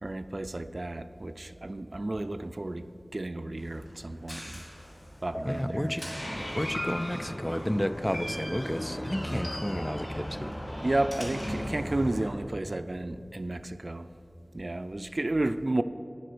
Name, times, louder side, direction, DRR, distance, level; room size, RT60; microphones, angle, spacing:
voice 1, 0.0-4.6 5.2-6.1 10.8-14.1 14.5-15.8, right 2 dB, 60° right, 11 dB, 0.4 m, -32 dB
Door, 3.6-12.3, equal, 80° left, 2.4 m, -37 dB
sound 1, 5.3-5.9 6.7-7.3 8.1-8.7 9.4-10.0, left 1 dB, 55° left, 1.4 m, -40 dB
voice 2, 5.5-6.1 6.5-10.5, equal, 15° left, 12 dB, 0.3 m, -32 dB
9.8 x 7.5 x 6.8 m, 2.7 s
wide cardioid pair, 50°, 0 cm